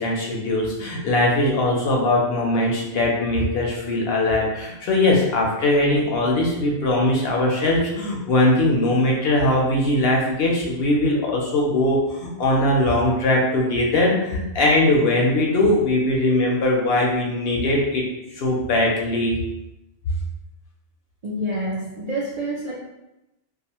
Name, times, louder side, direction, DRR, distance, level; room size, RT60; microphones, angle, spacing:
voice 1, 0.0-18.0 18.4-19.4, left 1 dB, 65° left, -2 dB, 0.7 m, -20 dB
voice 2, 21.2-22.7, right 1 dB, 70° right, -5 dB, 0.4 m, -27 dB
2.4 x 2.3 x 2.8 m, 0.93 s
omnidirectional pair, 1.3 m